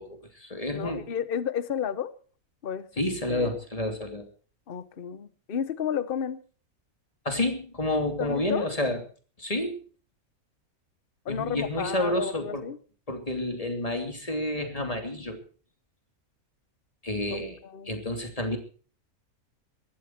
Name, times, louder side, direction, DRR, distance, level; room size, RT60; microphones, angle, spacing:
voice 1, 0.0-1.0 3.0-4.2 7.2-9.0 9.4-9.8 11.3-12.6 13.1-15.4 17.0-17.6 17.9-18.6, left 1 dB, 25° left, 2.8 m, -29 dB
voice 2, 0.7-2.1 2.6-3.5 4.7-6.4 8.2-8.7 11.2-12.8 17.3-18.0, left 8 dB, 45° left, 1.1 m, -32 dB
20.0 x 14.0 x 4.5 m
omnidirectional pair, 1.5 m